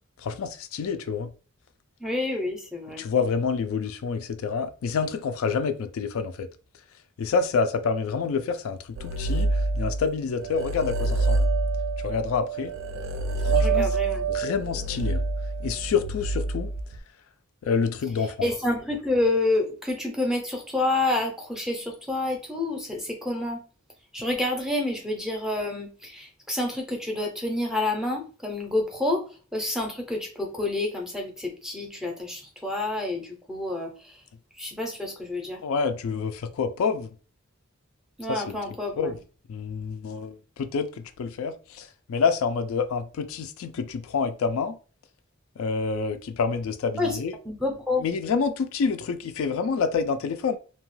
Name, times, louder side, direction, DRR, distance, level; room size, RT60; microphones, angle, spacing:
voice 1, 0.2-1.3 3.0-6.5 7.2-11.5 12.0-12.7 13.4-14.0 14.3-15.2 15.6-16.7 17.6-18.5 35.6-37.1 38.3-38.5 39.0-39.2 39.5-44.8 45.6-47.3 48.0-50.6, left 5 dB, 70° left, 0.3 m, -27 dB
voice 2, 2.0-3.0 13.5-14.3 18.4-23.6 24.1-29.2 29.5-34.2 34.5-35.6 38.2-39.1 47.0-48.0, left 2 dB, ahead, 0.5 m, -28 dB
sound 1, 9.0-10.1 10.4-17.0, right 3 dB, 60° right, 0.4 m, -26 dB
2.7 x 2.2 x 3.1 m
head